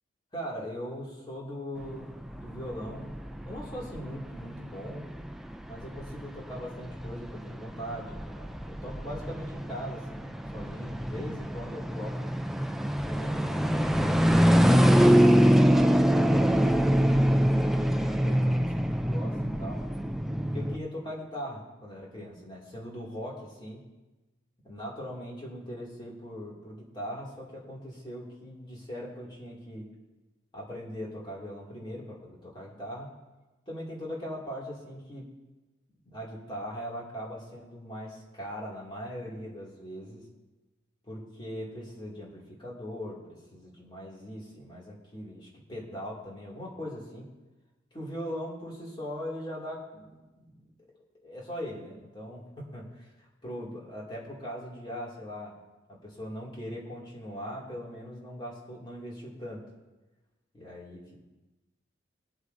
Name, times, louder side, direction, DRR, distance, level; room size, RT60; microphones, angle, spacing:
voice 1, 0.3-3.1 3.4-5.1 5.7-12.3 13.1-13.9 14.6-19.9 20.5-23.8 24.6-29.8 30.5-33.2 33.7-35.3 36.0-40.2 41.0-47.3 47.9-50.7 51.2-55.5 55.9-59.7 60.5-61.2, equal, 25° left, -4 dB, 2.5 m, -40 dB
sound 1, 1.8-20.8, equal, ahead, 0.4 m, -25 dB
21.0 x 8.1 x 2.7 m, 1.1 s
head